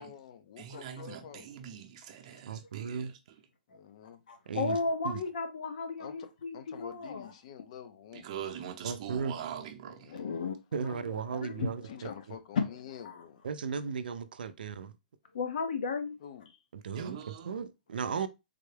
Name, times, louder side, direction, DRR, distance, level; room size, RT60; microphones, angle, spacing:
voice 1, 0.0-1.5 3.7-4.2 6.0-8.3 10.0-10.5 11.8-13.4 16.2-16.6, left 8 dB, 45° left, 0.5 m, -48 dB
voice 2, 0.6-3.1 8.1-10.2 16.9-17.6, right 9 dB, 40° right, 0.7 m, -43 dB
voice 3, 2.5-3.1 4.5-4.8 5.0-5.2 8.8-9.3 10.7-12.1 13.4-14.9 16.7-18.3, right 6 dB, 80° right, 0.4 m, -36 dB
voice 4, 4.3-7.3 10.1-12.0 13.0-13.2 15.3-16.2, left 4 dB, 65° left, 0.8 m, -35 dB
3.6 x 2.2 x 3.2 m
hypercardioid pair, 160°, 5 cm